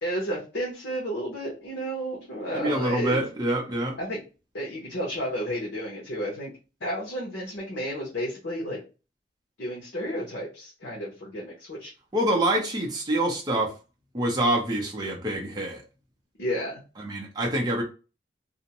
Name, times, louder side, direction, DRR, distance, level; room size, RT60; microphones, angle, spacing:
voice 1, 0.0-3.2 4.0-4.2 4.5-6.5 6.8-8.8 9.6-11.9 16.4-16.8, equal, 80° left, 0.8 m, -32 dB
voice 2, 2.5-3.9 12.1-13.7 14.1-15.8 17.0-17.8, right 1 dB, 20° right, 0.6 m, -26 dB
2.5 x 2.1 x 2.8 m
head